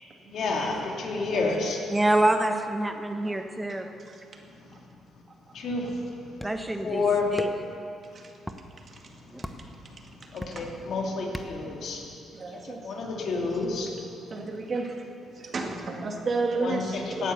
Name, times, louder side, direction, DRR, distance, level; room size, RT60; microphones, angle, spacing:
voice 1, 0.3-1.8 4.6-4.9 5.5-6.3 6.8-7.3 9.5-12.0 12.5-14.2 16.6-17.3, left 3 dB, 65° left, -1 dB, 2.6 m, -30 dB
voice 2, 1.9-3.9 6.4-7.0 7.3-7.5 9.3-9.4, right 1 dB, 15° right, 6 dB, 1.3 m, -26 dB
sound 1, 6.4-6.7 7.4-7.8 8.4-8.6 9.4-9.7 10.4-10.8 11.3-11.7, equal, ahead, 1.1 m, -37 dB
voice 3, 12.3-12.8 13.2-13.4 14.3-15.0 15.4-17.3, right 3 dB, 45° right, 2 dB, 2.0 m, -32 dB
16.5 x 9.2 x 6.9 m, 2.6 s
supercardioid pair, 65°, 0 cm